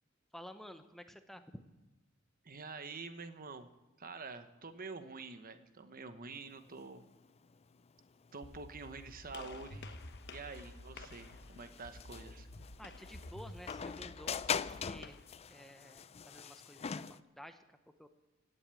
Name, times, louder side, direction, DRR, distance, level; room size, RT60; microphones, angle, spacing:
voice 1, 0.3-1.5 12.8-15.2 15.5-17.0 17.4-18.1, equal, ahead, 8 dB, 0.8 m, -52 dB
voice 2, 2.4-3.7 4.0-7.0 8.3-10.0 10.3-12.5, right 4 dB, 45° right, 10 dB, 1.1 m, -47 dB
sound 1, 6.3-17.2, left 7 dB, 30° left, 0.4 m, -43 dB
sound 2, 8.4-11.4 11.8-14.9, left 1 dB, 85° left, 1.4 m, -52 dB
Gunshot gunfire, 9.3-15.4, left 5 dB, 55° left, 1.1 m, -55 dB
17.0 x 8.1 x 9.0 m, 1.1 s
head